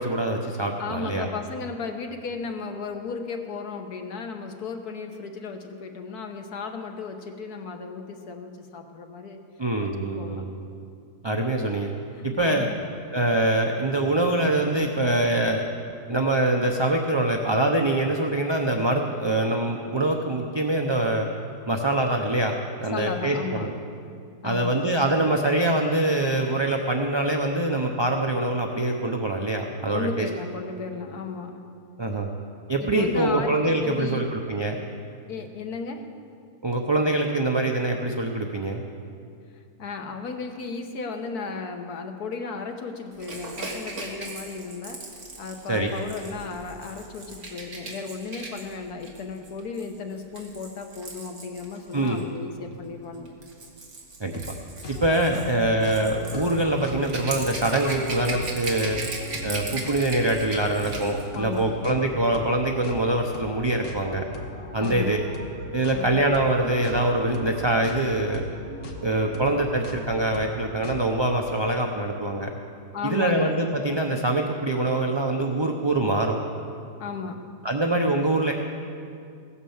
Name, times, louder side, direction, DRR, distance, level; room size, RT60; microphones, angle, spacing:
voice 1, 0.0-1.3 9.6-10.5 11.2-11.9 12.2-12.7 13.1-15.6 16.1-21.3 21.7-22.5 22.8-23.7 24.4-30.3 32.0-32.3 32.7-34.8 36.6-38.8 45.7-45.9 51.9-52.2 54.2-54.6 54.9-59.0 59.4-64.2 64.7-65.2 65.7-68.4 69.0-72.5 73.0-76.4 77.6-78.5, right 2 dB, 30° right, 2 dB, 0.5 m, -24 dB
voice 2, 0.8-9.5 9.8-9.9 10.2-10.5 12.1-12.8 22.8-23.7 24.4-24.8 29.9-31.6 32.8-33.6 33.8-34.3 35.3-36.1 39.8-53.4 55.3-55.6 56.0-56.1 61.3-61.9 64.8-65.2 65.9-66.2 72.9-73.5 77.0-77.6, left 5 dB, 70° left, 5 dB, 1.6 m, -35 dB
Rattle / Rattle (instrument), 43.2-52.2 53.1-61.3 61.5-61.7, right 3 dB, 50° right, 1.9 m, -38 dB
sound 1, 54.3-54.6 54.8-71.3, left 2 dB, 50° left, 1.5 m, -39 dB
16.5 x 9.7 x 7.2 m, 2.4 s
omnidirectional pair, 1.7 m